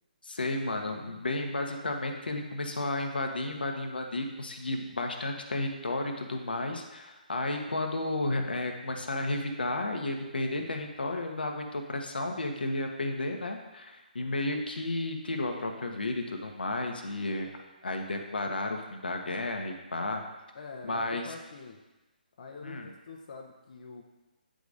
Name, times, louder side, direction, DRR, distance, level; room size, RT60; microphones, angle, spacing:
voice 1, 0.2-17.5 17.8-20.2 20.8-21.2 22.6-22.9, left 2 dB, 80° left, 4 dB, 0.9 m, -32 dB
voice 2, 20.5-21.8 22.3-24.0, left 4 dB, 55° left, 1 dB, 0.7 m, -45 dB
9.1 x 4.9 x 2.6 m, 1.1 s
figure-of-eight pair, 145°, 5 cm